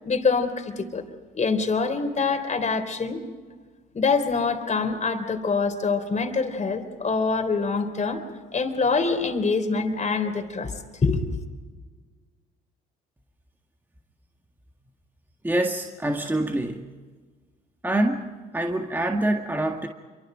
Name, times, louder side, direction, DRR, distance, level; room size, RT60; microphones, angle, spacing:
voice 1, 0.1-1.0 1.3-3.2 3.9-8.2 8.5-10.7 11.0-11.4, left 4 dB, 35° left, 5 dB, 3.5 m, -25 dB
voice 2, 15.4-16.9 17.8-18.3 18.5-19.9, right 1 dB, 10° right, 3 dB, 1.9 m, -25 dB
26.5 x 24.5 x 5.1 m, 1.4 s
supercardioid pair, 65°, 21 cm